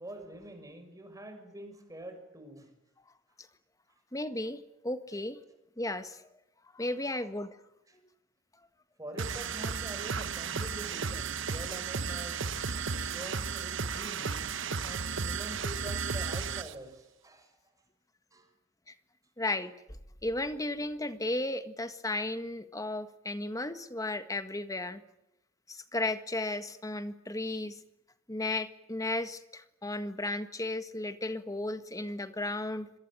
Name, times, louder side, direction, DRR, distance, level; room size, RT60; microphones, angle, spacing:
voice 1, 0.0-2.7 7.9-8.0 9.0-12.8 13.1-14.4 14.8-17.6 18.3-18.5, right 1 dB, 15° right, 6 dB, 6.5 m, -45 dB
voice 2, 4.1-5.4 5.8-6.2 6.7-7.6 18.9-19.0 19.4-25.0 25.7-27.8 28.3-32.9, left 2 dB, 15° left, 10 dB, 1.6 m, -34 dB
sound 1, 9.2-16.7, right 5 dB, 65° right, 1.2 m, -34 dB
26.5 x 22.5 x 9.0 m, 0.85 s
head